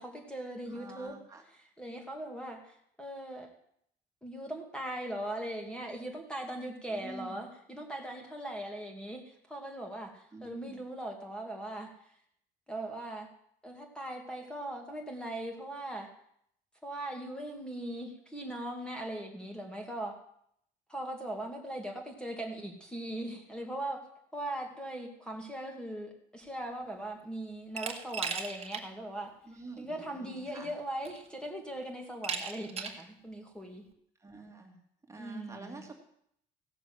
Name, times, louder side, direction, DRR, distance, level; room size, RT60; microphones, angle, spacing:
voice 1, 0.0-1.2 1.8-3.5 4.2-11.9 12.7-13.3 13.6-16.1 16.8-20.2 20.9-24.0 24.3-29.3 29.8-33.8 35.2-35.8, right 1 dB, 5° left, 2 dB, 2.4 m, -40 dB
voice 2, 0.7-1.4 6.9-7.4 10.3-10.8 29.4-30.8 34.2-34.8 35.1-35.9, right 3 dB, 15° right, 2 dB, 2.4 m, -47 dB
Glass, 27.8-28.9 29.3-29.4 30.5-30.6 31.1-31.5 32.2-33.1, right 6 dB, 35° right, 1.8 m, -37 dB
16.0 x 7.0 x 7.8 m, 0.70 s
cardioid pair, 110°, 17 cm